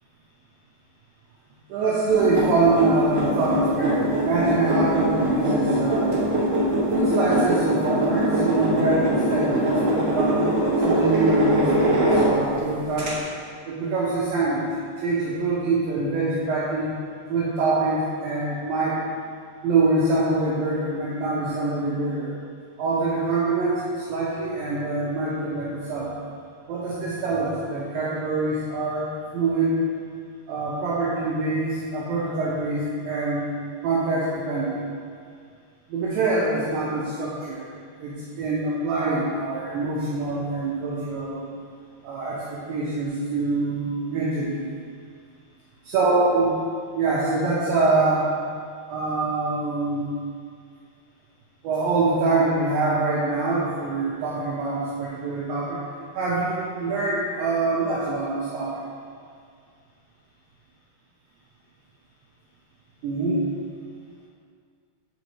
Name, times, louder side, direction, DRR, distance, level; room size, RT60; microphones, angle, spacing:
voice 1, 1.7-6.2 6.9-10.5 10.8-13.2 13.7-14.7 15.0-16.9 17.3-19.0 19.6-22.3 22.8-26.1 26.7-29.7 30.5-33.5 33.8-34.8 35.9-37.7 38.0-41.5 42.0-44.7 45.9-46.5 47.0-48.3 48.9-50.1 51.6-55.8 56.1-58.8 63.0-63.5, right 3 dB, 80° right, -7 dB, 2.2 m, -24 dB
sound 1, 2.1-12.6 13.0-13.1, right 1 dB, 55° right, 1.2 m, -22 dB
7.9 x 4.1 x 3.0 m, 2.2 s
omnidirectional pair, 4.5 m